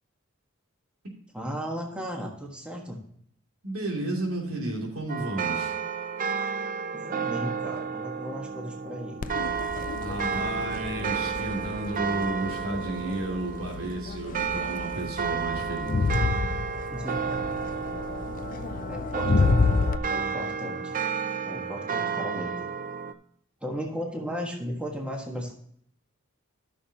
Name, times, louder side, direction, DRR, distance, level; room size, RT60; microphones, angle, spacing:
voice 1, 1.3-3.0 6.9-9.2 16.9-17.4 18.8-20.9 21.4-22.5 23.6-25.5, equal, 5° right, -1 dB, 1.4 m, -35 dB
voice 2, 3.6-5.8 9.9-16.1 21.8-22.1, right 1 dB, 80° right, -1 dB, 2.9 m, -33 dB
sound 1, 5.1-23.1, right 6 dB, 40° right, 0.5 m, -32 dB
Crowd, 9.2-20.0, left 4 dB, 40° left, 0.4 m, -30 dB
13.5 x 6.4 x 2.9 m, 0.68 s
head